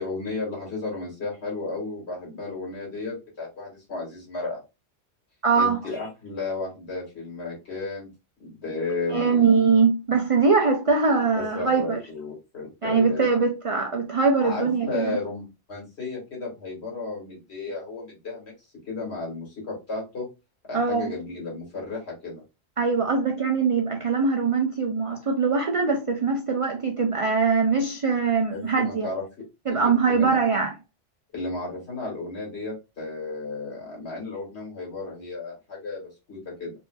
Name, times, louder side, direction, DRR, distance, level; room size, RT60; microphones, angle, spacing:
voice 1, 0.0-4.6 5.5-8.1 8.4-9.5 11.3-13.3 14.4-18.5 18.9-20.3 20.7-22.4 28.5-29.2 29.7-30.4 31.3-36.7, left 3 dB, 70° left, 2.2 m, -33 dB
voice 2, 5.4-5.8 9.1-12.0 12.8-15.2 20.7-21.1 22.8-29.1 29.7-30.7, right 4 dB, 60° right, 0.3 m, -22 dB
4.1 x 2.7 x 2.3 m
omnidirectional pair, 1.1 m